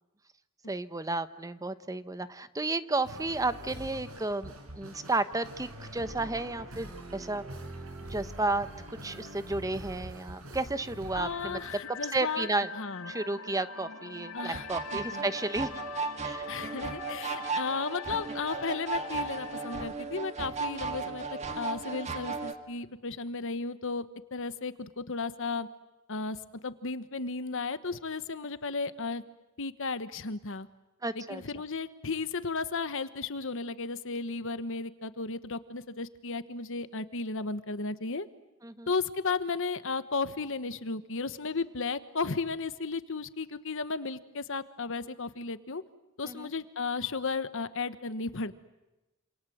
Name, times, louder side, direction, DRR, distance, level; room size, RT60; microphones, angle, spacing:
voice 1, 0.7-7.4 8.1-11.6 11.9-12.7 13.1-15.7 16.2-16.5 31.0-31.4 38.6-38.9 46.2-46.5, right 2 dB, 15° right, 12 dB, 0.9 m, -32 dB
sound 1, 3.0-11.7, right 1 dB, 75° right, 5.0 m, -44 dB
voice 2, 11.1-12.5 12.8-13.1 14.3-14.6 14.9-15.3 16.5-21.2 21.5-24.1 24.3-25.7 26.1-26.4 26.6-29.2 29.6-30.7 31.1-38.3 38.9-45.8 46.2-48.5, left 4 dB, 65° left, 13 dB, 1.3 m, -34 dB
sound 2, 11.2-19.9, left 7 dB, 80° left, 2.6 m, -43 dB
sound 3, 14.4-22.5, right 4 dB, 30° right, 2.0 m, -36 dB
27.5 x 27.5 x 7.9 m, 1.0 s
head